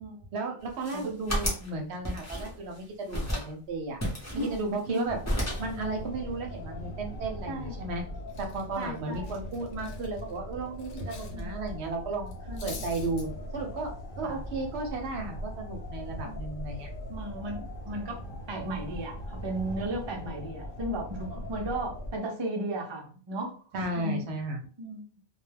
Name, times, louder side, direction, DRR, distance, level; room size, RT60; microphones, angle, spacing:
voice 1, 0.3-4.0 4.3-5.2 5.6-8.0 8.4-12.3 12.6-13.9 14.2-16.9 23.7-24.6, right 3 dB, 70° right, 3 dB, 0.8 m, -34 dB
sound 1, 0.6-1.7 2.0-2.8 3.1-3.5 4.0-5.0 5.2-5.8, equal, 15° left, 0.7 m, -32 dB
voice 2, 0.9-1.3 4.3-5.1 7.5-7.7 8.8-9.3 11.3-11.5 12.5-12.7 14.2-14.4 16.2-16.3 17.1-18.2 18.5-23.5 24.0-24.2 24.8-25.2, right 1 dB, 35° right, 0 dB, 0.4 m, -35 dB
sound 2, 5.1-22.2, equal, 55° left, 0.8 m, -40 dB
Cutlery silverware, 7.7-7.9 8.3-11.4 11.7-11.9 12.3-13.3, left 4 dB, 80° left, 1.0 m, -47 dB
2.2 x 2.2 x 3.2 m, 0.42 s
omnidirectional pair, 1.2 m